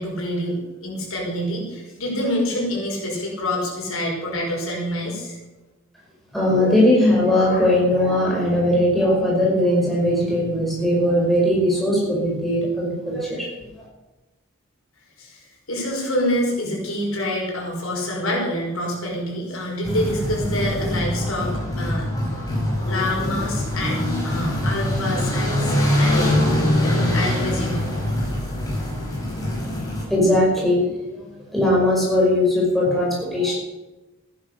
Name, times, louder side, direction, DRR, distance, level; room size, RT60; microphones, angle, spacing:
voice 1, 0.0-5.4 15.2-22.1 22.8-26.3 26.8-27.8, left 1 dB, 85° left, -2 dB, 5.6 m, -27 dB
voice 2, 6.3-13.5 29.4-29.5 30.1-31.2 31.5-33.6, left 1 dB, ahead, -5 dB, 5.4 m, -19 dB
sound 1, 19.8-30.0, left 1 dB, 20° left, 5.6 m, -23 dB
14.5 x 11.0 x 6.6 m, 1.1 s
head